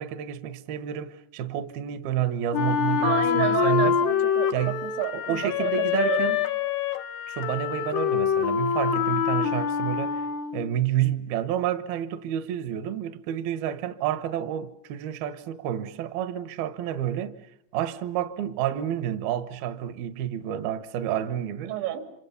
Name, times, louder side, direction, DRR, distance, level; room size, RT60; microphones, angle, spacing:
voice 1, 0.0-4.0 4.5-4.9 5.1-6.4 7.3-10.2 10.5-17.4 17.7-21.7, right 11 dB, 70° right, 2.7 m, -29 dB
Wind instrument woodwind instrument, 2.5-10.7, left 8 dB, 75° left, 3.4 m, -25 dB
voice 2, 3.0-6.3 21.7-22.1, right 10 dB, 85° right, 5.3 m, -30 dB
28.5 x 27.0 x 7.0 m
omnidirectional pair, 5.1 m